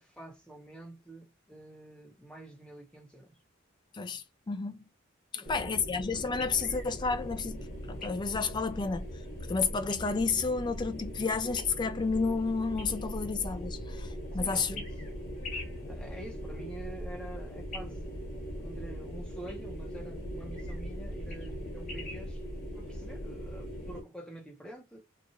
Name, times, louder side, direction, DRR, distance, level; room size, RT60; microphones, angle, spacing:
voice 1, 0.0-3.4 5.3-5.8 14.3-14.9 15.8-18.1 18.6-22.4 22.7-25.0, right 1 dB, 5° left, 0.9 m, -47 dB
voice 2, 3.9-4.9 5.3-9.1 9.5-14.8, left 4 dB, 25° left, 0.3 m, -31 dB
sound 1, 5.4-24.0, equal, 40° left, 1.4 m, -40 dB
2.8 x 2.4 x 2.7 m
head